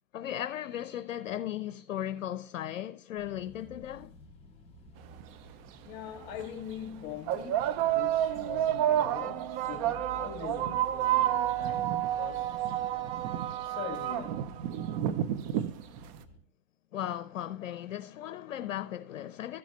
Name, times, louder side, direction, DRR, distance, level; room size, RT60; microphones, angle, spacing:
voice 1, 0.1-4.1 16.9-19.6, left 11 dB, 80° left, 0.7 m, -36 dB
sound 1, 3.2-16.4, left 3 dB, 15° left, 3.8 m, -52 dB
sound 2, 5.2-5.3 6.2-6.4 7.3-16.2, right 12 dB, 30° right, 0.5 m, -30 dB
voice 2, 5.8-12.6 13.6-14.6, left 9 dB, 40° left, 2.1 m, -43 dB
14.0 x 6.2 x 3.0 m
hypercardioid pair, 130°, 39 cm